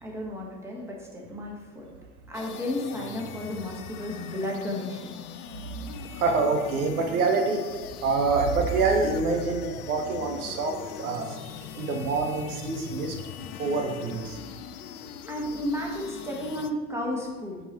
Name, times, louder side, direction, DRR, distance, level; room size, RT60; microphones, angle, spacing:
voice 1, 0.0-1.8 2.3-5.2 15.3-17.6, left 1 dB, 5° right, -2 dB, 1.3 m, -33 dB
sound 1, 2.3-16.7, left 8 dB, 75° left, 0.6 m, -42 dB
voice 2, 5.5-7.7 8.0-11.4 11.7-13.1 13.6-14.4, right 3 dB, 75° right, 3 dB, 0.9 m, -26 dB
5.7 x 4.1 x 4.1 m, 1.3 s
hypercardioid pair, 80°, 45 cm